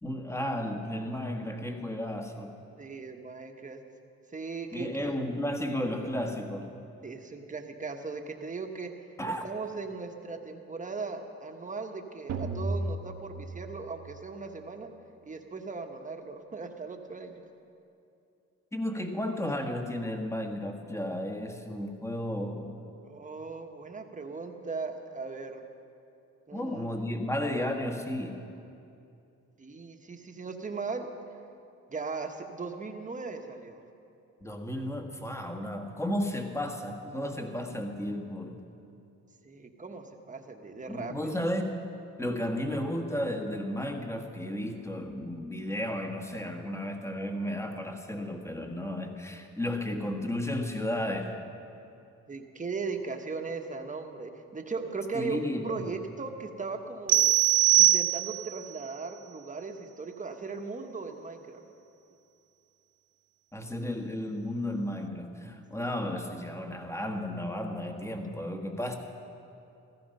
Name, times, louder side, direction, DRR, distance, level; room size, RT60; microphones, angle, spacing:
voice 1, 0.0-2.5 4.7-6.7 9.2-9.4 18.7-22.7 26.5-28.5 34.4-38.6 40.9-41.8 42.2-51.4 55.1-55.9 63.5-69.0, left 1 dB, 10° left, 4 dB, 1.6 m, -33 dB
voice 2, 2.8-3.8 4.3-5.1 7.0-9.2 9.4-14.9 15.2-17.4 23.0-25.6 26.5-27.0 29.6-31.1 31.9-33.8 39.4-41.4 42.4-42.5 52.3-57.3 57.7-61.6 65.8-65.9, right 4 dB, 25° right, 4 dB, 1.4 m, -38 dB
sound 1, 12.3-14.2, right 2 dB, 75° right, 1.3 m, -35 dB
sound 2, 57.1-58.6, right 14 dB, 40° right, 0.4 m, -22 dB
15.5 x 14.0 x 5.6 m, 2.7 s
cardioid pair, 90°, 30 cm